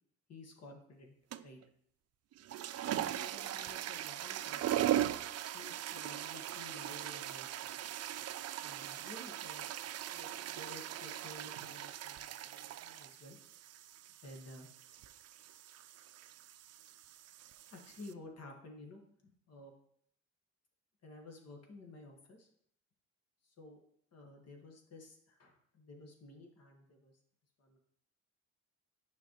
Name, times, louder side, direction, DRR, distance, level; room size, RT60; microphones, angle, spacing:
voice 1, 0.3-1.1 1.4-1.6 2.9-4.9 5.4-7.8 8.6-9.7 10.1-13.4 14.2-14.7 17.7-19.7 21.0-22.5 23.4-23.8 24.1-27.2 27.6-27.8, left 2 dB, 55° left, 2 dB, 1.7 m, -53 dB
sound 1, 1.3-1.6 2.3-18.1, right 12 dB, 55° right, 0.4 m, -40 dB
9.4 x 5.7 x 3.0 m, 0.68 s
cardioid pair, 90°, 30 cm